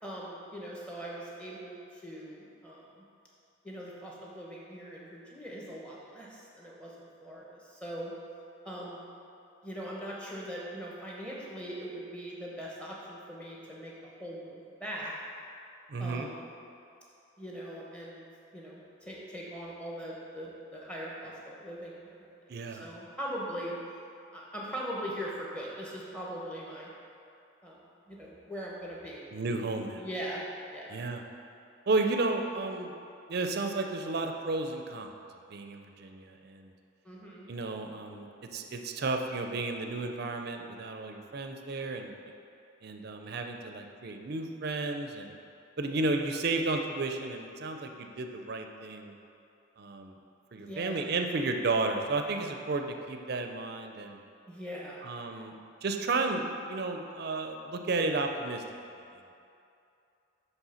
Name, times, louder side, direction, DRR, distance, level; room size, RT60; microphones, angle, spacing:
voice 1, 0.0-3.0 3.6-8.1 8.6-9.0 9.6-13.9 14.2-15.1 16.0-16.4 17.4-18.2 18.5-22.3 22.7-23.7 24.3-26.9 27.6-29.3 30.0-30.9 37.0-37.5 50.6-51.1 54.5-55.0, equal, 5° left, -5 dB, 1.0 m, -41 dB
voice 2, 15.9-16.3 22.5-22.8 29.3-30.0 30.9-31.2 31.9-32.9 33.3-35.2 35.5-36.7 37.5-42.1 42.8-45.4 45.8-49.1 49.8-50.2 50.5-54.2 55.0-55.5 55.8-58.6 58.9-59.2, right 3 dB, 50° right, 4 dB, 0.4 m, -33 dB
7.3 x 3.3 x 5.6 m, 2.6 s
head